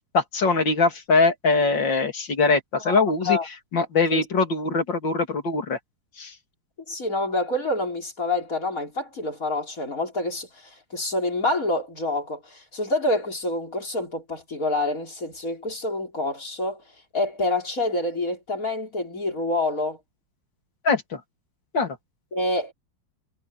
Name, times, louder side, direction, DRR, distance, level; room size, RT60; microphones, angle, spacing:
voice 1, 0.1-3.4 3.7-5.8 6.2-6.3 20.8-21.2 21.7-22.0, left 4 dB, 60° left, 3.2 m, -22 dB
voice 2, 2.8-3.5 4.1-4.2 6.9-16.8 17.1-20.0 22.3-22.7, left 2 dB, 40° left, 4.8 m, -27 dB
omnidirectional pair, 2.3 m